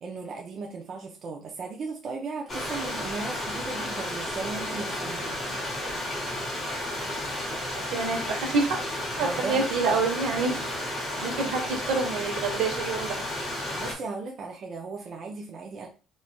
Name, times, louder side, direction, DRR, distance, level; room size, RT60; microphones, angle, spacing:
voice 1, 0.0-5.4 9.2-9.6 13.8-15.9, right 4 dB, 35° right, 1 dB, 0.5 m, -36 dB
Stream, 2.5-13.9, left 1 dB, 20° left, 1.4 m, -32 dB
voice 2, 7.7-8.8 9.2-10.5 11.2-13.2, right 4 dB, 70° right, 3 dB, 1.1 m, -27 dB
4.0 x 3.1 x 2.2 m, 0.34 s
cardioid pair, 175°, 0 cm